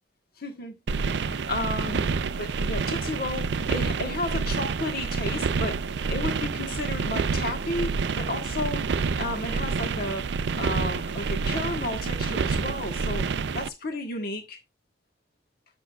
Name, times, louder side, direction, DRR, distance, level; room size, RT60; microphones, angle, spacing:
voice 1, 0.4-0.8 1.1-2.0 2.4-5.8 6.1-8.8 9.2-10.3 10.6-13.3 13.5-14.6, left 2 dB, 50° left, 1.4 m, -32 dB
sound 1, 0.9-13.7, right 5 dB, 60° right, 0.4 m, -28 dB
8.3 x 7.3 x 2.4 m
head